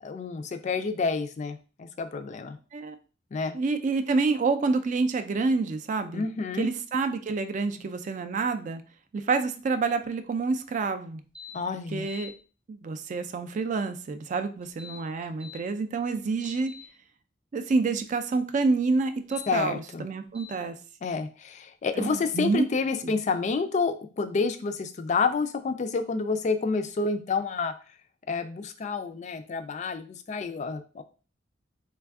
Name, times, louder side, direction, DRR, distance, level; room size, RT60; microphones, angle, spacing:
voice 1, 0.0-2.6 3.3-3.6 6.1-6.7 11.5-12.1 19.5-20.1 21.0-27.7 28.3-31.0, left 4 dB, 40° left, 9 dB, 0.3 m, -29 dB
voice 2, 3.5-6.2 6.6-8.8 9.1-11.2 11.9-12.3 12.7-16.7 17.5-20.7 22.0-22.7 23.0-23.1, right 4 dB, 40° right, 9 dB, 0.3 m, -28 dB
sound 1, 11.3-11.5 11.9-12.3 14.6-15.6 16.1-16.8 19.2-19.5 20.3-20.5, left 6 dB, 5° right, 0.6 m, -45 dB
3.3 x 2.3 x 3.4 m, 0.36 s
head